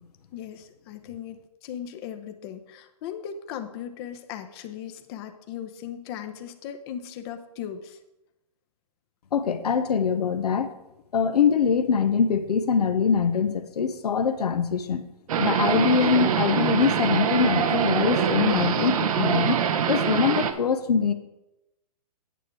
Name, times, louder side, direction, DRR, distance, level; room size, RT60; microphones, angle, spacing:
voice 1, 0.3-8.0, left 9 dB, 40° left, 7 dB, 0.9 m, -38 dB
voice 2, 9.3-10.7 11.1-15.1 15.4-19.6 19.9-21.1, left 6 dB, 75° left, 9 dB, 0.8 m, -23 dB
sound 1, 15.3-20.5, right 7 dB, 65° right, 0.9 m, -24 dB
9.2 x 7.5 x 4.6 m, 0.93 s
hypercardioid pair, 130°, 20 cm